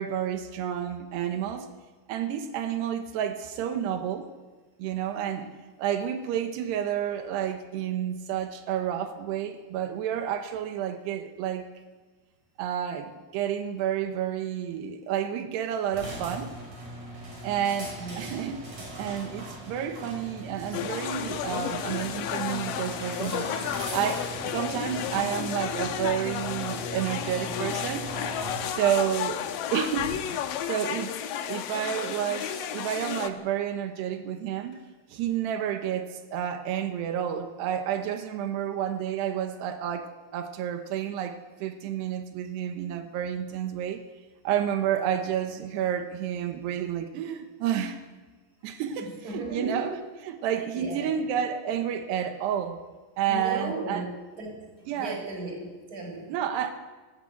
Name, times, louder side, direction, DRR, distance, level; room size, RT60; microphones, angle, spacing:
voice 1, 0.0-1.7 2.1-4.3 4.8-5.5 5.8-11.7 12.6-16.5 17.4-18.6 19.0-23.5 23.9-28.1 28.7-29.5 29.7-30.2 30.7-31.2 31.5-34.8 35.1-44.0 44.4-48.0 48.6-49.9 50.3-52.8 53.2-54.1 54.9-55.2 56.3-56.7, right 9 dB, 85° right, 7 dB, 3.3 m, -30 dB
sound 1, 15.9-30.3, right 2 dB, 55° right, 8.2 m, -40 dB
sound 2, 20.7-33.3, left 9 dB, 70° left, 2.4 m, -32 dB
voice 2, 49.0-49.9 50.7-51.1 53.3-54.6 55.0-56.3, right 2 dB, 20° right, 1 dB, 5.5 m, -36 dB
19.5 x 16.0 x 8.3 m, 1.3 s
omnidirectional pair, 4.7 m